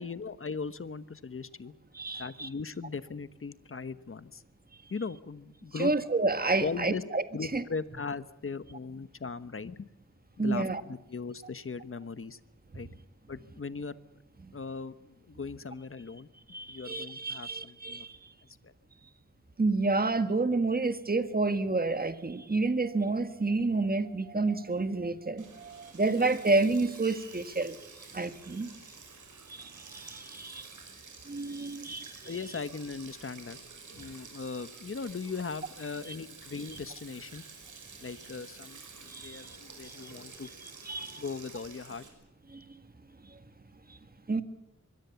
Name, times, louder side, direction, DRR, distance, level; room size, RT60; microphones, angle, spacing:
voice 1, 0.0-1.7 2.2-4.4 4.9-5.9 6.6-7.0 7.3-9.9 10.4-12.4 12.7-12.9 13.3-14.0 14.5-16.3 16.7-18.1 18.6-18.7 32.2-33.6 33.9-37.4 38.0-40.5 41.2-42.1, left 4 dB, 45° left, 14 dB, 1.2 m, -39 dB
voice 2, 1.9-2.5 5.8-7.2 7.5-7.6 10.4-10.8 16.5-18.1 19.6-27.8 28.1-28.7 29.5-30.7 31.3-32.3 39.1-39.5 39.8-40.1 40.8-41.2 42.5-42.6 44.3-44.4, right 3 dB, 30° right, 10 dB, 1.8 m, -29 dB
Sink (filling or washing), 25.4-42.1, right 4 dB, 85° right, 5.9 m, -50 dB
24.5 x 22.0 x 7.1 m, 0.86 s
wide cardioid pair, 90°, 30 cm